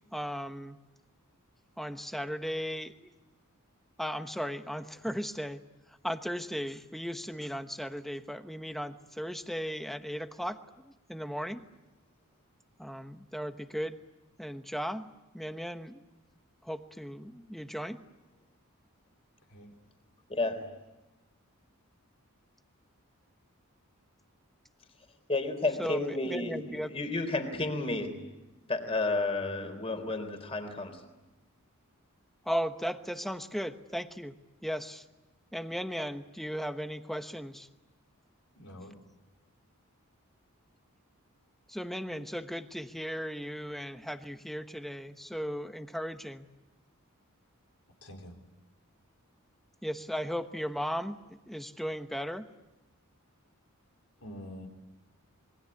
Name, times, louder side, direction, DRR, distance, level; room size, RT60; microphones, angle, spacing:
voice 1, 0.1-0.8 1.8-3.1 4.0-5.6 5.9-11.7 12.8-14.0 14.4-15.1 15.3-16.0 16.6-18.0 25.8-26.9 32.4-34.3 34.6-35.0 35.5-37.7 41.7-46.5 49.8-52.5, equal, ahead, 8 dB, 1.1 m, -36 dB
voice 2, 25.3-28.2 28.7-31.0, left 2 dB, 25° left, 7 dB, 3.8 m, -31 dB
voice 3, 38.5-39.0 48.0-48.4 54.2-54.7, equal, 75° left, 3 dB, 4.5 m, -45 dB
26.5 x 22.5 x 9.6 m, 1.1 s
head